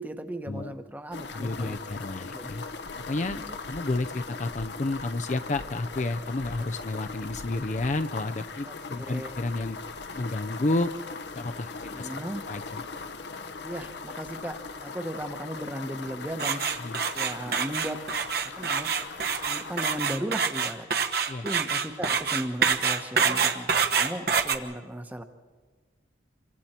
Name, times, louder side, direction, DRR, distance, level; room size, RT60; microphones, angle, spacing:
voice 1, 0.0-1.8 2.3-2.5 3.3-3.6 8.7-9.3 11.9-12.4 13.6-16.6 17.1-18.0 18.6-18.9 19.4-20.9 21.4-25.2, equal, 10° right, 8 dB, 1.0 m, -36 dB
sound 1, 1.1-20.0, left 4 dB, 70° left, 1.0 m, -40 dB
voice 2, 1.3-2.6 3.1-3.4 3.7-9.8 10.2-10.9 11.3-12.2 12.5-12.8 16.8-17.0 21.3-21.5, left 2 dB, 40° left, 9 dB, 0.5 m, -31 dB
sound 2, 16.4-24.6, right 6 dB, 55° right, 1.2 m, -26 dB
28.0 x 24.5 x 4.4 m, 1.4 s
head